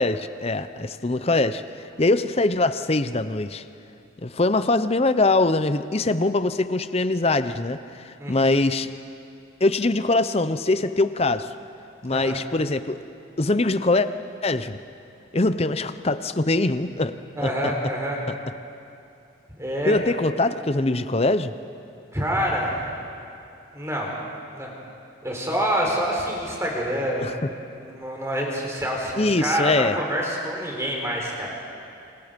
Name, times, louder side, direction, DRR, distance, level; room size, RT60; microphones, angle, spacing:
voice 1, 0.0-1.6 2.0-3.6 4.2-8.9 9.6-11.5 12.0-13.0 13.4-14.1 14.4-14.8 15.3-17.1 17.4-17.7 19.9-21.5 27.2-27.3 29.2-29.9, left 2 dB, 30° left, 12 dB, 0.7 m, -22 dB
voice 2, 8.2-8.5 12.1-12.4 17.4-18.2 19.6-20.0 22.1-22.9 23.7-24.1 24.5-24.7 25.2-31.5, equal, 15° right, -1 dB, 4.2 m, -27 dB
28.0 x 27.5 x 5.3 m, 2.6 s
head